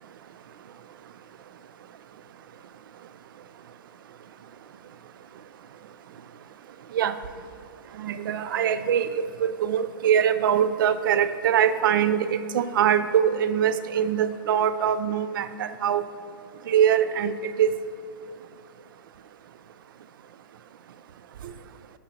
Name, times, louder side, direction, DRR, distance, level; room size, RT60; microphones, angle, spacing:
voice 1, 8.0-16.0 16.7-17.7, right 9 dB, 70° right, 12 dB, 0.4 m, -23 dB
7.3 x 6.0 x 4.3 m, 2.1 s
hypercardioid pair, 120°, 12 cm